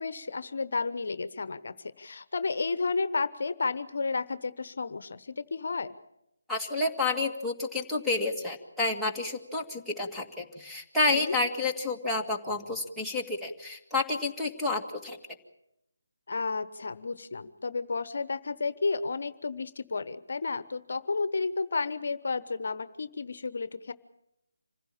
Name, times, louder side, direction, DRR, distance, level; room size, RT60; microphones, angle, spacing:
voice 1, 0.0-6.0 11.1-11.4 16.3-23.9, left 4 dB, 55° left, 14 dB, 1.1 m, -32 dB
voice 2, 6.5-15.2, left 3 dB, ahead, -2 dB, 2.0 m, -30 dB
26.5 x 16.0 x 8.7 m, 0.85 s
figure-of-eight pair, 155°, 0 cm